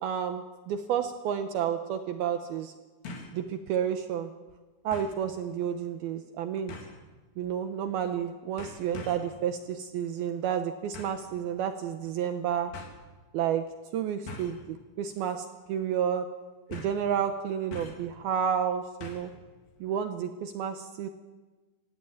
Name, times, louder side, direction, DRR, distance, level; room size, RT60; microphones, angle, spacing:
voice 1, 0.0-2.7 3.3-4.3 4.8-6.7 7.4-12.7 13.3-13.6 13.9-16.3 16.7-19.3 19.8-21.1, right 8 dB, 75° right, 7 dB, 2.8 m, -31 dB
sound 1, 1.1-1.2 3.1-3.4 3.8-3.9 4.9-5.2 6.7-7.0 8.0-8.2 8.6-9.3 10.9-11.3 12.2-12.3 12.7-13.0 14.3-14.6 15.1-15.4 15.6-15.7 16.7-17.1 17.7-18.1 19.0-19.4 19.7-19.8, left 2 dB, 80° left, 5.7 m, -43 dB
28.0 x 16.5 x 8.9 m, 1.3 s
omnidirectional pair, 4.8 m